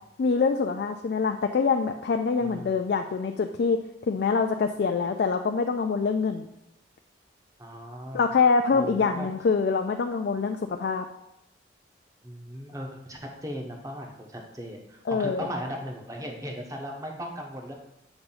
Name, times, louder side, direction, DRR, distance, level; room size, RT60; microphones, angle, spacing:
voice 1, 0.2-3.8 4.1-6.5 8.1-11.0 15.1-15.5, left 5 dB, 55° left, 5 dB, 0.3 m, -25 dB
voice 2, 2.4-2.8 7.6-8.3 8.7-9.3 12.2-17.7, equal, 20° right, 1 dB, 0.8 m, -37 dB
7.0 x 2.6 x 5.5 m, 0.85 s
head